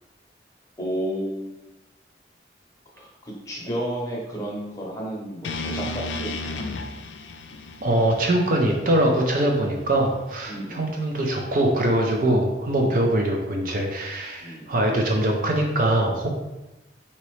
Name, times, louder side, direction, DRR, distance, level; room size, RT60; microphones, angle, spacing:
voice 1, 0.8-1.6 2.9-6.8 10.5-10.9 12.8-13.0 14.4-14.6, right 1 dB, 20° left, -4 dB, 0.9 m, -32 dB
sound 1, 5.4-9.6, left 3 dB, 85° left, 0.4 m, -34 dB
voice 2, 7.8-16.3, right 1 dB, 50° right, 1 dB, 0.5 m, -22 dB
4.1 x 2.9 x 3.1 m, 1.0 s
head